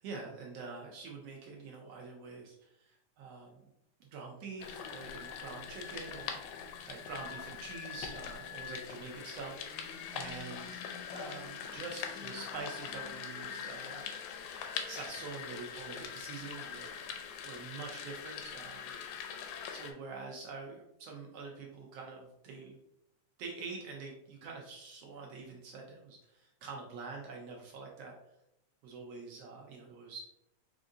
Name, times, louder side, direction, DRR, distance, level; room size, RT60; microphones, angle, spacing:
voice 1, 0.0-3.6 4.1-6.4 6.9-10.7 11.1-14.1 14.9-18.9 19.7-22.8 23.4-28.1 28.8-30.3, right 4 dB, 75° right, 0 dB, 1.6 m, -46 dB
sound 1, 4.6-19.9, left 7 dB, 80° left, 1.8 m, -43 dB
5.2 x 2.5 x 3.7 m, 0.81 s
omnidirectional pair, 3.3 m